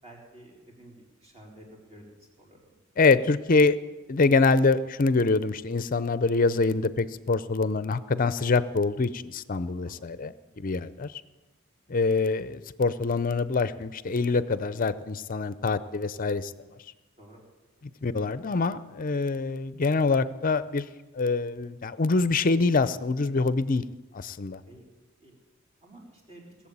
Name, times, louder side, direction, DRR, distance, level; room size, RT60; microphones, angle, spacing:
voice 1, 0.0-2.8 9.8-9.9 10.6-10.7 14.9-15.0 17.2-17.4 24.7-24.9 25.2-25.3 25.8-26.4, right 1 dB, 30° right, -1 dB, 3.9 m, -51 dB
voice 2, 3.0-3.8 4.1-10.3 10.6-11.1 11.9-16.5 18.0-20.8 21.2-23.8 24.1-24.6, left 3 dB, 40° left, 15 dB, 0.6 m, -25 dB
19.5 x 7.5 x 8.7 m, 1.2 s
head